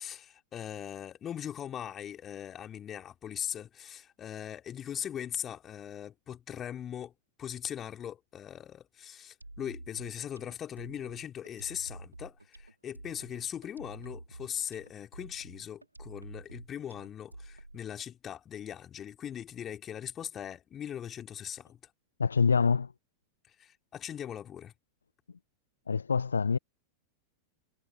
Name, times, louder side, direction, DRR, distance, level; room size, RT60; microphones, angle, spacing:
voice 1, 0.0-7.1 7.4-21.8 23.6-24.7, left 9 dB, 25° left, 3.4 m, -40 dB
sound 1, 9.4-18.0, right 1 dB, 85° right, 5.1 m, -49 dB
voice 2, 22.2-22.9 25.9-26.6, left 5 dB, 75° left, 1.0 m, -25 dB
figure-of-eight pair, 90°, 0 cm